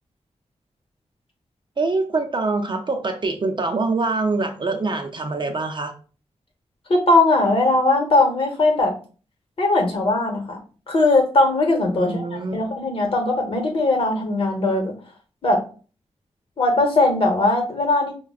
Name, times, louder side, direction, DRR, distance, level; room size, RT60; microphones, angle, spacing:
voice 1, 1.8-5.9 11.9-12.6, right 3 dB, 45° right, 4 dB, 0.6 m, -24 dB
voice 2, 6.9-8.9 9.6-10.6 10.9-15.0 15.4-15.6 16.6-18.1, left 2 dB, 50° left, 2 dB, 1.1 m, -19 dB
5.8 x 2.2 x 2.4 m, 0.38 s
wide cardioid pair, 110°, 12 cm